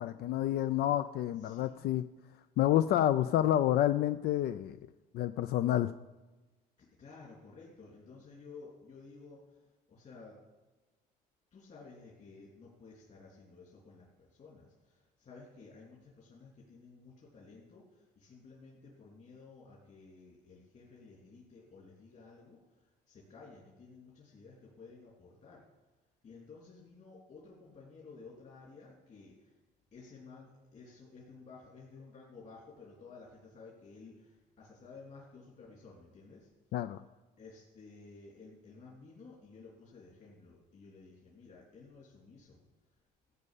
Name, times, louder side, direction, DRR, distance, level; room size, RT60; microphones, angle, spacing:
voice 1, 0.0-2.0 2.6-4.8 5.1-5.9 36.7-37.0, left 12 dB, 70° left, 11 dB, 0.4 m, -29 dB
voice 2, 1.4-1.8 6.8-10.4 11.5-25.6 26.2-29.6 29.9-36.5 37.4-42.6, left 4 dB, 45° left, -5 dB, 3.1 m, -54 dB
14.0 x 5.5 x 8.3 m, 1.2 s
cardioid pair, 110°, 17 cm